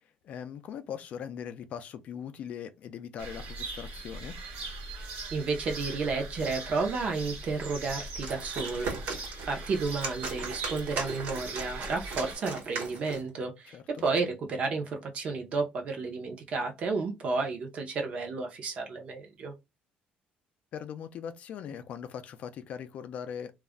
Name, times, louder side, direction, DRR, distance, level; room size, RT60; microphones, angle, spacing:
voice 1, 0.2-4.4 13.7-14.1 20.7-23.5, left 8 dB, 45° left, 0.4 m, -40 dB
sound 1, 3.2-12.3, right 3 dB, 90° right, 1.0 m, -40 dB
voice 2, 5.0-19.5, right 4 dB, 40° right, 0.7 m, -32 dB
sound 2, 8.0-13.3, right 4 dB, 65° right, 1.1 m, -38 dB
2.3 x 2.1 x 3.5 m
cardioid pair, 170°, 3 cm